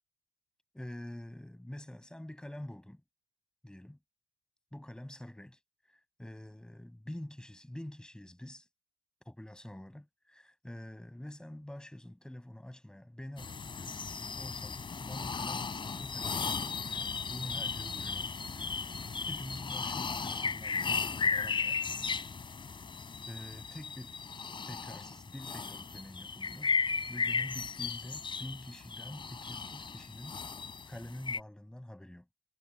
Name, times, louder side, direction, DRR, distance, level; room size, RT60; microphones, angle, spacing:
voice 1, 0.7-3.0 3.6-4.0 4.7-5.6 5.9-8.7 9.3-18.8 19.3-21.8 23.3-24.2 24.7-26.8 27.1-30.4 30.9-32.3, left 1 dB, 5° left, 7.3 m, -46 dB
sound 1, 13.4-31.4, left 5 dB, 30° left, 5.7 m, -36 dB
cardioid pair, 110°, 17 cm